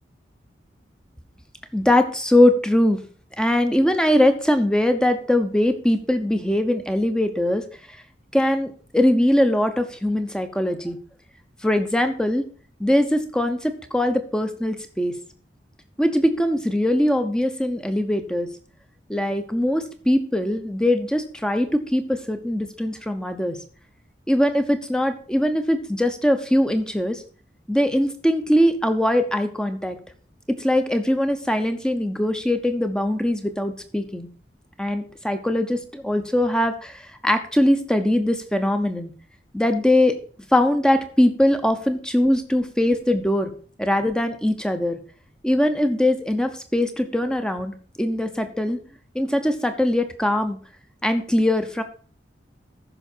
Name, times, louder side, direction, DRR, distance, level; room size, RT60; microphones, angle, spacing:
voice 1, 1.7-3.0 3.4-7.6 7.9-8.0 8.3-11.0 11.6-12.4 12.8-15.1 16.0-18.5 19.1-23.6 24.3-27.2 27.7-30.0 30.5-34.3 34.8-39.1 39.5-40.2 40.5-43.5 43.8-45.0 45.4-48.8 49.1-50.6 51.0-51.8, left 1 dB, 5° left, 8 dB, 0.8 m, -21 dB
14.0 x 5.8 x 4.4 m, 0.43 s
head